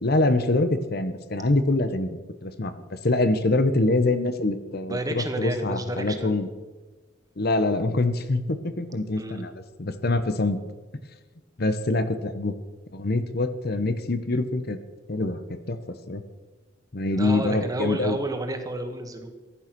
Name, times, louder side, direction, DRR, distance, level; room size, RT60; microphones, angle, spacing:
voice 1, 0.0-6.5 7.4-10.6 11.6-12.5 12.9-14.8 15.1-15.4 15.7-15.8 16.1-16.2 16.9-18.2, left 2 dB, 55° left, 10 dB, 1.1 m, -25 dB
voice 2, 4.9-6.6 9.2-9.4 17.1-19.3, right 1 dB, 20° right, 6 dB, 1.8 m, -31 dB
16.0 x 11.5 x 6.1 m, 1.3 s
head